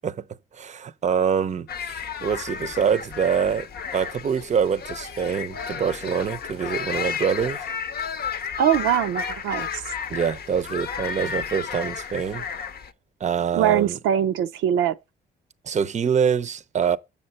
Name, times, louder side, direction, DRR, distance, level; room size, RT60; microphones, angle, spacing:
voice 1, 0.5-3.7 3.9-7.7 10.1-12.5 13.2-14.0 15.6-17.0, right 7 dB, 35° right, 0.6 m, -25 dB
sound 1, 1.7-12.9, left 6 dB, 55° left, 0.7 m, -32 dB
voice 2, 8.6-9.8 13.5-15.0, right 10 dB, 85° right, 0.5 m, -22 dB
7.3 x 6.7 x 4.1 m
cardioid pair, 90°, 20 cm